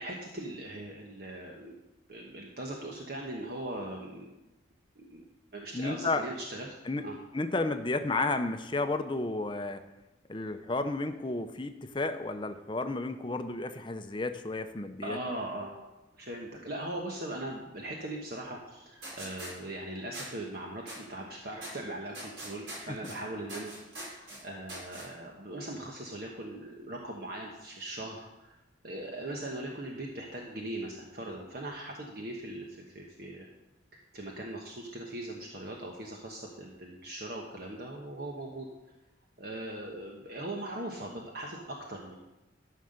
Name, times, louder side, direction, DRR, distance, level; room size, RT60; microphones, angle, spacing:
voice 1, 0.0-1.8 2.1-4.3 4.9-5.2 5.5-6.7 7.0-7.1 15.0-15.7 16.1-23.7 24.0-28.6 28.8-32.7 32.9-33.5 33.9-38.7 39.4-42.2, right 1 dB, 50° right, 0 dB, 1.2 m, -40 dB
voice 2, 5.7-6.2 6.8-7.0 7.3-9.8 10.3-15.2 22.9-23.1, left 2 dB, 25° left, 8 dB, 0.7 m, -32 dB
sound 1, 19.0-19.5 20.1-20.3 20.9-21.0 21.6-21.7 22.1-23.2 23.5-24.4 24.7-25.0, right 1 dB, 65° right, 4.8 m, -42 dB
13.0 x 5.6 x 6.6 m, 1.0 s
head